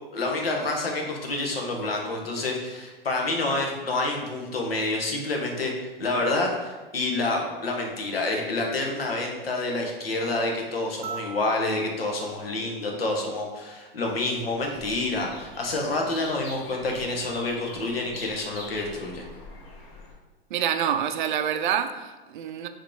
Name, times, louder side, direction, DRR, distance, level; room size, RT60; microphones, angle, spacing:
voice 1, 0.1-19.2, left 2 dB, 80° left, 0 dB, 1.1 m, -28 dB
sound 1, 11.0-13.6 15.2-15.3, right 6 dB, 30° right, 1.0 m, -42 dB
sound 2, 14.0-20.1, left 2 dB, 50° left, 1.2 m, -44 dB
voice 2, 20.5-22.7, right 9 dB, 55° right, 8 dB, 0.4 m, -27 dB
4.7 x 3.1 x 3.7 m, 1.2 s
hypercardioid pair, 105°, 30 cm